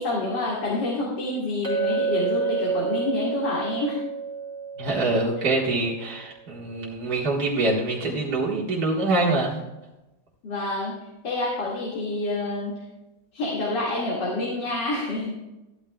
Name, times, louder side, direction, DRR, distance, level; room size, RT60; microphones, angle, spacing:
voice 1, 0.0-4.0 5.4-5.5 10.4-11.0 11.2-12.8 13.3-15.4, left 2 dB, 90° left, -5 dB, 2.8 m, -28 dB
Chink clink, 1.6-6.1, right 5 dB, 5° left, 3.3 m, -29 dB
voice 2, 4.8-9.6, right 2 dB, 60° right, -3 dB, 2.1 m, -25 dB
13.5 x 12.0 x 2.3 m, 0.98 s
omnidirectional pair, 1.8 m